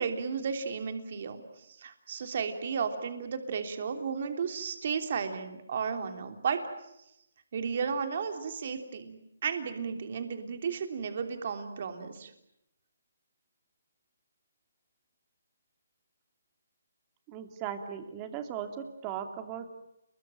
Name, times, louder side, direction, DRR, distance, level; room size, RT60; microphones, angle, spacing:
voice 1, 0.0-6.6 7.5-12.3, right 6 dB, 45° right, 7 dB, 3.2 m, -34 dB
voice 2, 17.3-19.7, right 8 dB, 20° right, 7 dB, 2.6 m, -38 dB
30.0 x 21.5 x 9.1 m, 0.83 s
hypercardioid pair, 170°, 0 cm